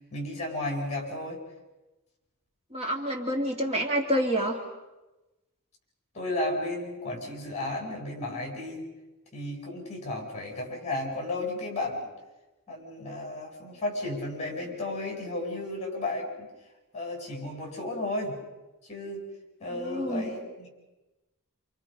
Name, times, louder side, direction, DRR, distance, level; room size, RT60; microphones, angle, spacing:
voice 1, 0.0-1.4 6.1-8.8 9.3-12.1 12.7-16.5 16.9-18.4 18.9-19.2 19.6-20.7, left 2 dB, 30° left, 0 dB, 7.9 m, -33 dB
voice 2, 2.7-4.6 19.7-20.3, equal, 30° right, 1 dB, 2.3 m, -28 dB
29.0 x 28.5 x 5.3 m, 1.1 s
head